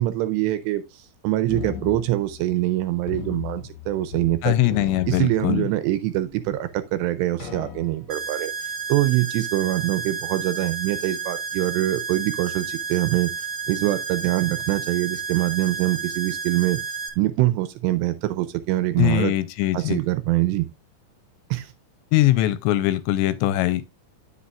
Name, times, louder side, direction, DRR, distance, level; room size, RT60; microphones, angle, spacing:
voice 1, 0.0-4.6 5.1-13.3 13.7-16.8 17.2-19.3 19.7-20.7 21.5-21.7, right 15 dB, 80° right, 2.6 m, -24 dB
sound 1, 1.5-2.7 3.1-4.4 4.6-5.9 6.5-6.6 7.4-8.2, left 7 dB, 60° left, 1.7 m, -36 dB
voice 2, 4.4-5.7 19.0-20.0 22.1-23.8, left 15 dB, 85° left, 2.7 m, -21 dB
sound 2, 8.1-17.1, right 6 dB, 25° right, 1.7 m, -31 dB
9.4 x 8.4 x 2.4 m
omnidirectional pair, 5.3 m